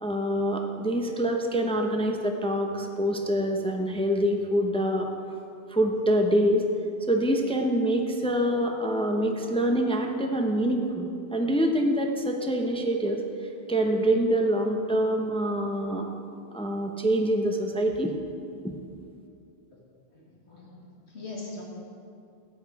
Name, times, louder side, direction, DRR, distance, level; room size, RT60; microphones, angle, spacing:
voice 1, 0.0-5.1 5.7-6.6 7.1-13.2 13.7-16.1 16.5-18.1, right 1 dB, 5° left, 2 dB, 0.7 m, -25 dB
voice 2, 20.1-21.6, left 3 dB, 85° left, -3 dB, 2.5 m, -42 dB
14.0 x 9.0 x 4.7 m, 2.6 s
omnidirectional pair, 1.1 m